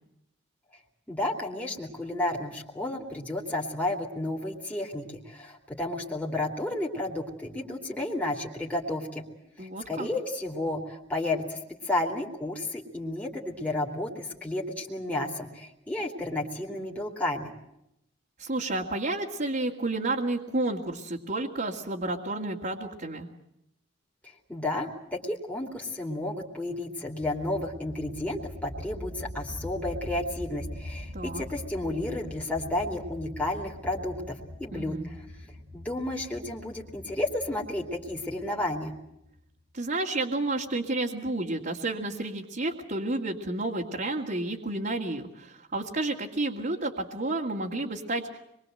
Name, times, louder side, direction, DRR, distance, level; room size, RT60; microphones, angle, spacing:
voice 1, 1.1-9.2 9.6-17.5 24.5-35.2 35.7-38.9, left 1 dB, 10° left, -2 dB, 2.9 m, -32 dB
voice 2, 9.6-10.1 18.4-23.3 31.1-31.4 34.7-35.1 39.7-48.4, right 2 dB, 45° right, -3 dB, 2.3 m, -31 dB
sound 1, 27.2-39.6, left 1 dB, 70° right, 2.9 m, -43 dB
26.0 x 22.5 x 7.9 m, 0.84 s
head